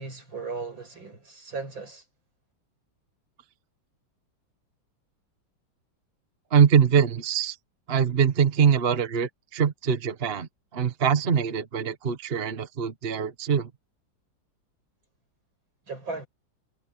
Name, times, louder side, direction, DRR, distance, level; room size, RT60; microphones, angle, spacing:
voice 1, 0.0-2.0 15.9-16.3, right 4 dB, 80° right, 8.6 m, -36 dB
voice 2, 6.5-7.6 7.9-13.7, right 7 dB, 35° right, 1.2 m, -23 dB
omnidirectional pair, 2.1 m